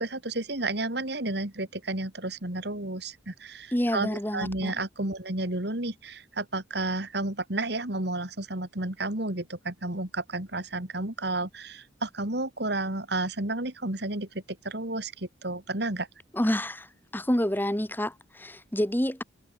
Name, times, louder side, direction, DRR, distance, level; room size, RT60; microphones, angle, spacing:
voice 1, 0.0-14.3 14.6-16.1, right 2 dB, 60° right, 2.9 m, -31 dB
voice 2, 3.7-4.7 16.3-16.9 17.1-19.2, equal, 10° left, 1.9 m, -28 dB
head